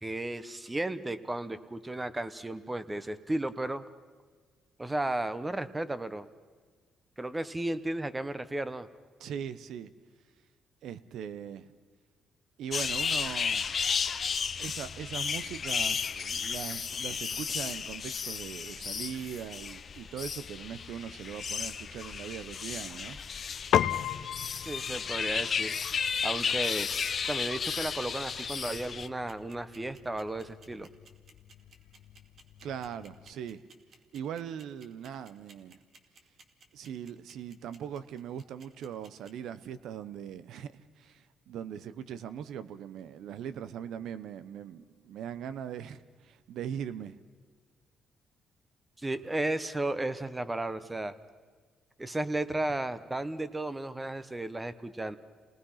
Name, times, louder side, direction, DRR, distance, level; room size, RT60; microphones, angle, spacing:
voice 1, 0.0-3.8 4.8-6.3 7.2-8.9 24.6-26.9 27.3-30.9 49.0-51.1 52.0-55.2, right 2 dB, 15° right, 1.2 m, -34 dB
voice 2, 9.2-9.9 10.8-11.7 12.6-13.6 14.6-23.2 32.6-33.6 34.1-35.8 36.7-47.1, right 8 dB, 80° right, 1.0 m, -40 dB
sound 1, 12.7-29.1, left 6 dB, 45° left, 0.9 m, -33 dB
Piano, 23.7-33.3, left 10 dB, 70° left, 0.6 m, -37 dB
sound 2, 28.1-39.3, right 4 dB, 60° right, 2.5 m, -56 dB
29.0 x 19.5 x 5.8 m
cardioid pair, 90°, 0 cm